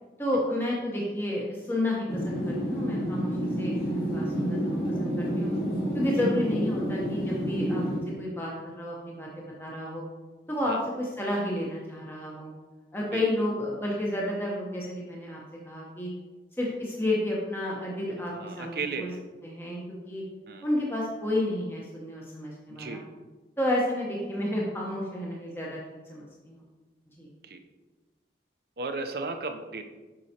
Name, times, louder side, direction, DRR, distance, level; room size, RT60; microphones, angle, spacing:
voice 1, 0.2-5.5 5.9-7.8 8.2-10.0 10.5-12.5 12.9-16.1 16.6-19.1 19.4-19.8 20.1-20.2 20.6-23.0 23.6-25.8 26.1-26.6 27.2-27.3, left 1 dB, 15° left, -4 dB, 0.8 m, -31 dB
sound 1, 2.1-8.0, equal, 55° left, 2.0 m, -29 dB
voice 2, 18.3-19.2 20.5-20.7 22.7-23.0 27.4-27.6 28.8-29.8, right 3 dB, 55° right, 6 dB, 0.6 m, -35 dB
7.6 x 5.4 x 2.8 m, 1.2 s
head